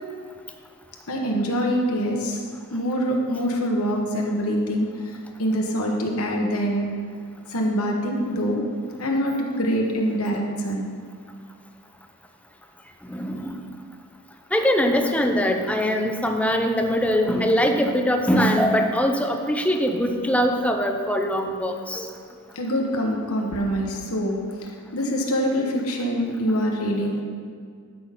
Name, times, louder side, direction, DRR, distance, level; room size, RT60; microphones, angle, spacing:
voice 1, 1.1-2.4 2.7-6.9 7.5-8.6 9.0-10.9 22.5-27.2, equal, 70° left, 0 dB, 1.4 m, -25 dB
voice 2, 13.1-13.6 14.5-22.0, equal, 5° left, 4 dB, 0.7 m, -22 dB
12.0 x 6.0 x 4.2 m, 2.1 s
head